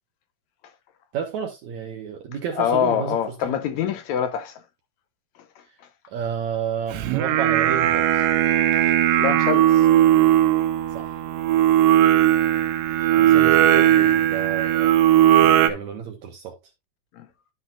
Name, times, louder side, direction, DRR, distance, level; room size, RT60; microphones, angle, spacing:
voice 1, 1.1-3.6 5.7-5.8 6.1-8.3 10.9-11.2 12.9-15.0 15.4-16.6, right 8 dB, 65° right, 2.3 m, -31 dB
voice 2, 2.5-4.6 9.2-9.9 13.0-13.1 17.1-17.3, left 9 dB, 75° left, 1.7 m, -25 dB
Singing, 6.9-15.7, right 12 dB, 90° right, 2.5 m, -18 dB
12.0 x 6.6 x 2.5 m
omnidirectional pair, 3.8 m